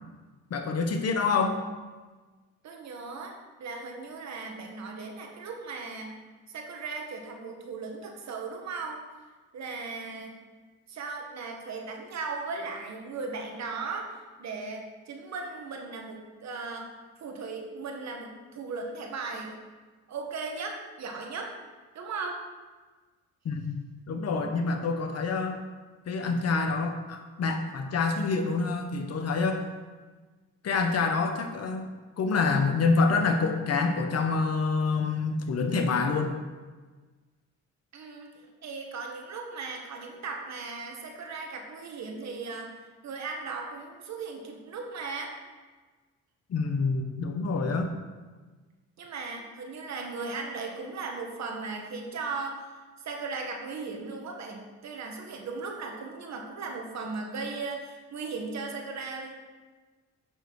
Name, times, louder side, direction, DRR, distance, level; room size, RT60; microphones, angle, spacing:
voice 1, 0.5-1.6 23.4-25.6 26.1-29.6 30.6-31.9 32.2-36.4 46.5-47.9, left 4 dB, 55° left, 6 dB, 1.1 m, -27 dB
voice 2, 2.6-6.2 6.5-9.0 9.5-10.3 10.9-16.9 17.2-19.6 20.1-21.5 21.9-22.4 37.9-38.3 38.6-42.7 43.0-45.4 49.0-59.3, right 4 dB, 65° right, 2 dB, 1.6 m, -37 dB
7.9 x 6.4 x 4.7 m, 1.3 s
cardioid pair, 90°, 30 cm